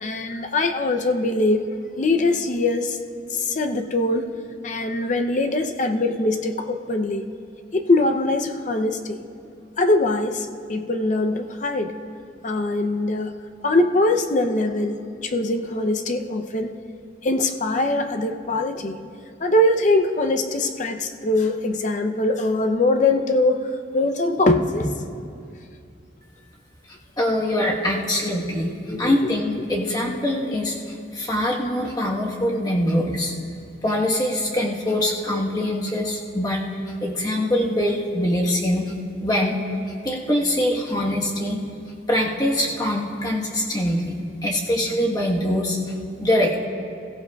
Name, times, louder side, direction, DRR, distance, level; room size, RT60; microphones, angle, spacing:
voice 1, 0.0-1.7 2.0-3.0 3.3-4.3 4.6-7.3 7.7-9.2 9.8-11.9 12.4-13.4 13.6-16.7 17.2-19.0 19.4-25.1 28.9-29.2, left 2 dB, 40° left, 6 dB, 0.6 m, -22 dB
voice 2, 26.9-33.3 33.8-36.6 37.0-38.9 39.2-39.6 40.0-41.6 42.1-45.8 46.2-46.6, left 1 dB, 20° left, -2 dB, 1.2 m, -23 dB
21.5 x 14.5 x 2.3 m, 2.4 s
head